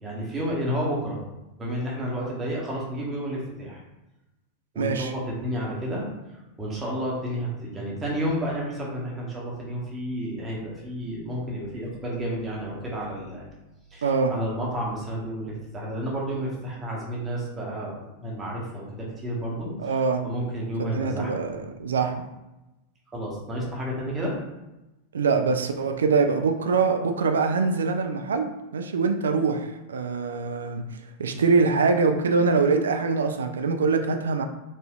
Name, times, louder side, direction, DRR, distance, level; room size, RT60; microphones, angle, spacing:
voice 1, 0.0-1.2 1.6-3.8 4.7-6.1 6.6-13.4 13.9-21.5 23.1-24.3, equal, 15° right, -4 dB, 1.0 m, -31 dB
voice 2, 4.8-5.1 14.0-14.4 19.8-20.2 20.8-22.3 25.1-30.8 31.2-34.4, right 4 dB, 65° right, 6 dB, 0.3 m, -24 dB
4.1 x 2.5 x 2.4 m, 0.99 s
figure-of-eight pair, 90°, 0 cm